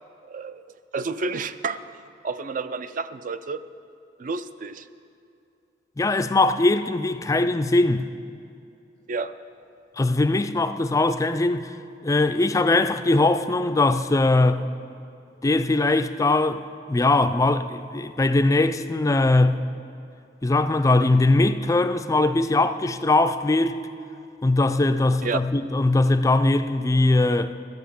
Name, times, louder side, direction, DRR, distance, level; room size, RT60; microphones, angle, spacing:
voice 1, 0.2-0.7 0.9-1.8 2.2-3.6 4.2-4.9 9.1-9.3 25.2-25.4, right 4 dB, 45° right, 0.4 m, -30 dB
voice 2, 6.0-8.1 10.0-11.7 12.0-14.6 15.4-16.6 16.9-19.6 20.4-23.8 24.4-27.5, left 2 dB, 20° left, 0.4 m, -21 dB
12.5 x 8.1 x 7.0 m
head